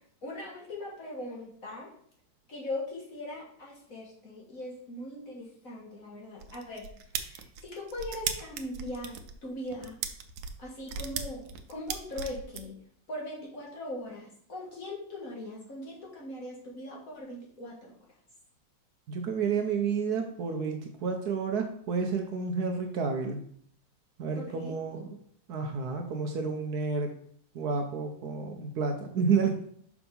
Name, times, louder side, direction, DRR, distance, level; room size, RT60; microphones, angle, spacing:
voice 1, 0.2-1.9 2.5-6.9 7.2-10.0 10.6-12.8 13.1-18.0 24.3-24.8, left 1 dB, 50° left, -3 dB, 2.0 m, -40 dB
sound 1, 6.4-12.6, right 7 dB, 85° right, 1.4 m, -37 dB
voice 2, 19.1-23.4 24.2-25.2 25.5-27.1 27.5-29.6, right 5 dB, 65° right, 4 dB, 1.1 m, -30 dB
6.0 x 3.6 x 5.3 m, 0.63 s
omnidirectional pair, 2.0 m